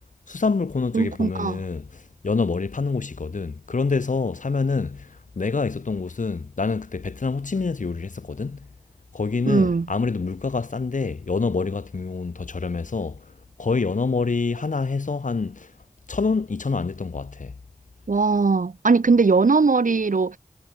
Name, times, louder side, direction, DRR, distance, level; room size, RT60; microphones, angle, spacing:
voice 1, 0.3-8.7 9.1-13.2 13.6-15.7 16.1-17.5, left 4 dB, 75° left, 1.1 m, -26 dB
voice 2, 0.9-1.6 9.5-9.9 18.1-20.4, right 4 dB, 80° right, 1.3 m, -20 dB
wide cardioid pair, 60°, 13 cm